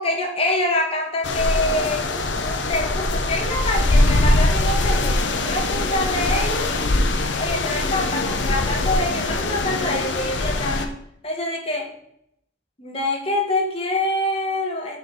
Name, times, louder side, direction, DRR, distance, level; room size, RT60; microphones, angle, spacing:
voice 1, 0.0-2.0 2.4-6.7 7.4-10.9 11.2-11.9 12.8-15.0, left 1 dB, 30° left, 0 dB, 1.5 m, -25 dB
sound 1, 1.2-10.9, left 2 dB, 75° left, 0.8 m, -22 dB
6.9 x 5.1 x 4.1 m, 0.74 s
head